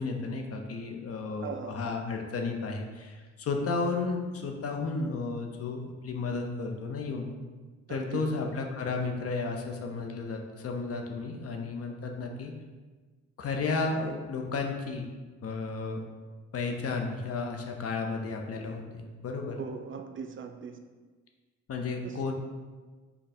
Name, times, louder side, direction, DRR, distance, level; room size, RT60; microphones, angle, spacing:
voice 1, 0.0-7.3 7.9-12.5 13.4-15.1 15.4-16.0 16.5-19.6 21.7-22.3, left 4 dB, 50° left, 2 dB, 0.7 m, -33 dB
voice 2, 1.4-1.8 7.9-8.2 19.6-20.8 22.0-22.2, right 6 dB, 45° right, 6 dB, 0.4 m, -39 dB
5.3 x 2.3 x 4.3 m, 1.4 s
cardioid pair, 90°, 30 cm